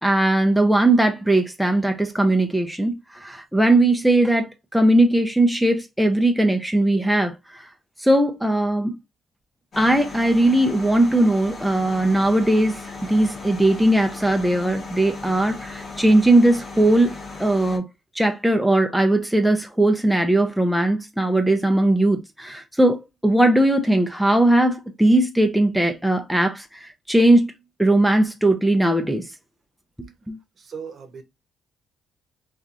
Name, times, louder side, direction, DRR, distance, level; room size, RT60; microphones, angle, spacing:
voice 1, 0.0-2.9 3.2-7.7 8.0-9.0 9.8-17.1 17.4-17.8 18.2-27.5 27.8-29.3 30.3-30.4, right 1 dB, 5° right, 0.5 m, -19 dB
sound 1, 9.7-17.8, left 3 dB, 45° left, 0.9 m, -37 dB
voice 2, 30.6-31.2, right 6 dB, 50° right, 0.8 m, -37 dB
2.9 x 2.4 x 2.5 m
cardioid pair, 90°, 0 cm